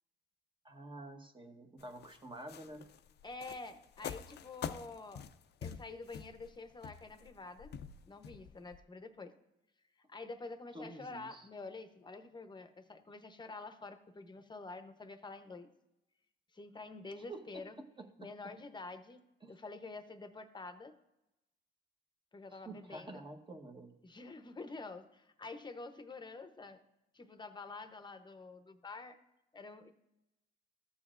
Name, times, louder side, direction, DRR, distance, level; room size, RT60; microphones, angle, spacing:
voice 1, 0.6-2.9 10.7-11.4 17.2-17.6 18.0-18.1 19.4-19.5 22.5-23.9, right 2 dB, 25° right, 4 dB, 1.2 m, -49 dB
sound 1, 1.8-8.8, left 8 dB, 55° left, 0.5 m, -46 dB
voice 2, 3.2-5.2 5.6-7.8 8.1-9.3 10.1-15.7 16.5-17.8 18.2-20.9 22.3-23.2 24.0-26.8 27.1-29.2 29.5-29.9, left 3 dB, 20° left, 8 dB, 0.8 m, -48 dB
14.0 x 7.0 x 2.5 m, 0.90 s
cardioid pair, 90°, 20 cm